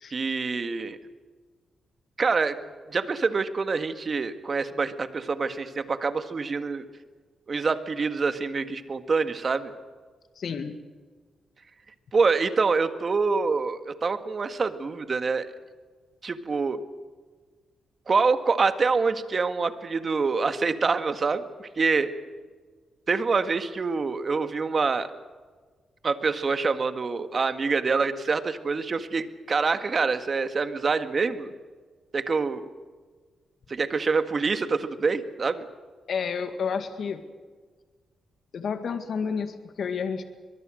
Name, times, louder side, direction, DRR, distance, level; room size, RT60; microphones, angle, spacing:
voice 1, 0.1-1.0 2.2-2.6 2.9-6.8 7.5-9.7 12.1-15.5 16.2-16.8 18.1-22.1 23.1-25.1 26.0-31.5 32.1-32.7 33.7-35.7, right 4 dB, 40° right, 9 dB, 1.8 m, -26 dB
voice 2, 10.4-10.8 36.1-37.2 38.5-40.2, left 6 dB, 65° left, 8 dB, 1.9 m, -30 dB
24.0 x 22.5 x 6.5 m, 1.5 s
cardioid pair, 90°, 0 cm